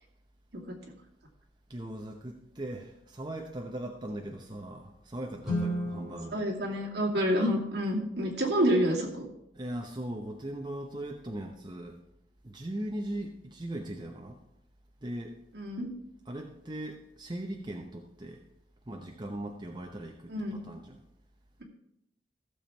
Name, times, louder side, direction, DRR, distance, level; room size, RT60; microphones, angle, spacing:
voice 1, 1.7-6.4 9.5-12.0 12.4-14.4 15.0-15.4 16.3-18.4 18.9-21.0, right 1 dB, 25° right, 1 dB, 0.9 m, -39 dB
Guitar, 5.4-8.0, equal, 5° right, 4.8 m, -36 dB
voice 2, 6.3-9.3 15.5-15.9 20.3-20.6, equal, 65° right, -2 dB, 2.5 m, -28 dB
15.0 x 7.1 x 4.5 m, 0.81 s
head